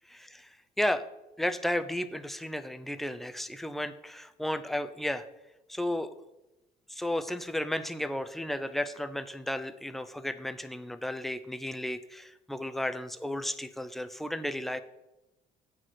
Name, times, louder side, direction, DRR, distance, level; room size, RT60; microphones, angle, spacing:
voice 1, 0.1-0.5 0.8-1.0 1.4-5.2 5.7-6.1 6.9-14.8, left 1 dB, ahead, 10 dB, 0.5 m, -33 dB
8.1 x 4.9 x 5.9 m, 0.96 s
cardioid pair, 110°, 17 cm